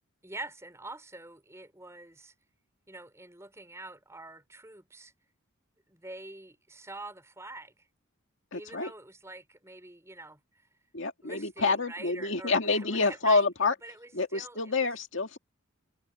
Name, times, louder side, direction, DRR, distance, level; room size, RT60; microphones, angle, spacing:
voice 1, 0.2-2.3 2.9-5.1 5.9-7.7 8.5-10.4 11.2-13.5 13.8-14.7, right 2 dB, 15° right, 4.5 m, -45 dB
voice 2, 8.5-8.9 10.9-13.7 14.1-15.4, left 3 dB, 60° left, 2.2 m, -27 dB
head